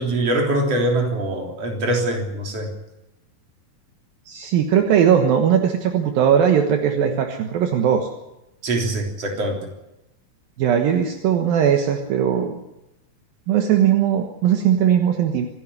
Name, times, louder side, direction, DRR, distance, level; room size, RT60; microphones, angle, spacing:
voice 1, 0.0-2.7 8.6-9.6, right 1 dB, 40° right, 1 dB, 4.3 m, -23 dB
voice 2, 4.3-8.1 10.6-12.5 13.5-15.5, right 8 dB, 75° right, 4 dB, 3.0 m, -19 dB
26.0 x 11.5 x 9.9 m, 0.94 s
omnidirectional pair, 4.3 m